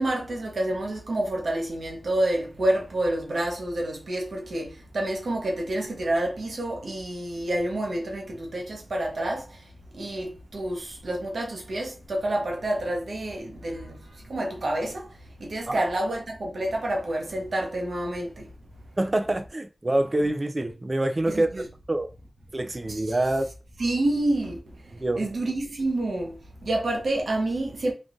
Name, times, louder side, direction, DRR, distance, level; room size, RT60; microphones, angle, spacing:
voice 1, 0.0-9.4 9.9-14.0 14.3-15.1 15.4-18.5 21.3-21.7 22.9-23.0 23.8-24.6 25.2-26.4 26.6-27.9, right 1 dB, 85° right, 1.1 m, -28 dB
voice 2, 19.0-21.6 21.9-22.1 22.5-23.5 24.9-25.3, right 1 dB, 40° right, 0.4 m, -26 dB
3.8 x 2.5 x 3.7 m
cardioid pair, 45°, 0 cm